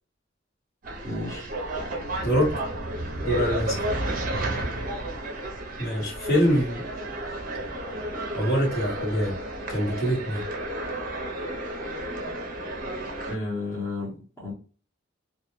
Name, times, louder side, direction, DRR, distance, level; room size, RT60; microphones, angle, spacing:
sound 1, 0.8-13.4, right 1 dB, 45° right, 0.5 m, -32 dB
voice 1, 1.0-1.5 13.3-14.5, left 2 dB, 15° left, -7 dB, 0.8 m, -32 dB
voice 2, 2.2-2.6 3.2-4.0 5.8-6.8 8.3-9.4 9.7-10.4, equal, 55° left, -3 dB, 1.2 m, -24 dB
2.3 x 2.1 x 3.0 m, 0.39 s
head